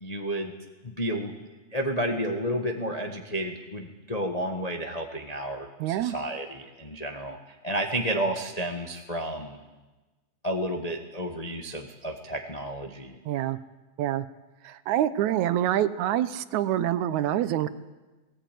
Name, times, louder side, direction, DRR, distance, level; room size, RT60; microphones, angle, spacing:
voice 1, 0.0-0.5 0.8-1.3 1.7-7.4 7.6-9.6 10.4-13.2, right 1 dB, 35° left, 3 dB, 0.6 m, -31 dB
voice 2, 5.8-6.2 13.3-13.6 14.0-14.3 14.6-17.7, right 12 dB, 75° right, 14 dB, 2.2 m, -26 dB
18.5 x 18.0 x 9.2 m, 1.2 s
omnidirectional pair, 3.4 m